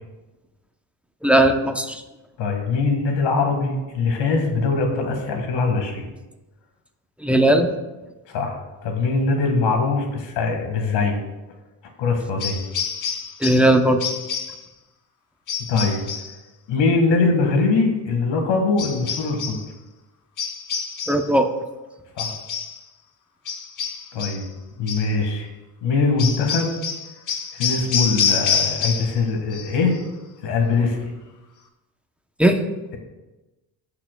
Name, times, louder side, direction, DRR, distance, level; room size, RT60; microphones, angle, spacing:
voice 1, 1.2-2.0 7.2-7.7 13.4-14.0 21.1-21.5 32.4-32.6, right 1 dB, 5° right, 5 dB, 0.7 m, -17 dB
voice 2, 2.4-6.1 8.3-11.2 12.0-12.6 15.7-16.0 16.7-19.6 22.2-22.3 24.1-24.5 24.8-25.5 25.8-26.7 27.6-30.0 30.4-31.1, left 4 dB, 80° left, 3 dB, 1.8 m, -22 dB
sound 1, 12.4-13.7 14.0-14.6 15.5-16.3 18.8-19.6 20.4-21.3 22.2-22.8 23.5-24.5 24.9-25.1 26.2-29.2 29.5-30.0, left 6 dB, 45° left, 1.0 m, -27 dB
17.0 x 5.8 x 2.3 m, 1.1 s
cardioid pair, 105°, 43 cm